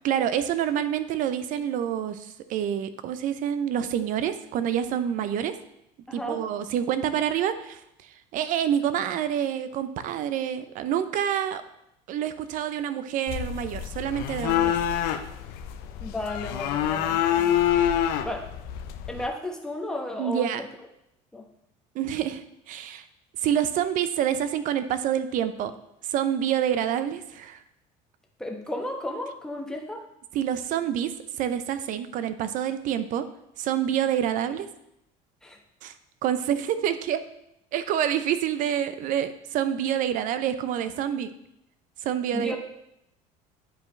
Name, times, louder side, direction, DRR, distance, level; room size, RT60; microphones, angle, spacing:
voice 1, 0.0-5.5 6.1-7.8 8.3-11.6 12.1-14.8 15.0-15.2 20.2-20.6 21.9-23.1 23.4-25.7 26.0-27.6 30.3-31.1 31.4-33.2 33.6-34.7 35.8-35.9 36.2-37.2 37.7-41.3 42.0-42.6, right 9 dB, 60° right, 11 dB, 0.6 m, -27 dB
voice 2, 6.1-6.5 16.0-17.5 18.2-18.5 19.1-20.5 21.3-21.4 28.4-30.1 35.4-35.6 42.3-42.6, left 1 dB, 5° left, 0 dB, 1.1 m, -33 dB
sound 1, 13.3-19.3, left 10 dB, 75° left, 0.6 m, -26 dB
10.0 x 4.8 x 3.2 m, 0.80 s
cardioid pair, 125°, 16 cm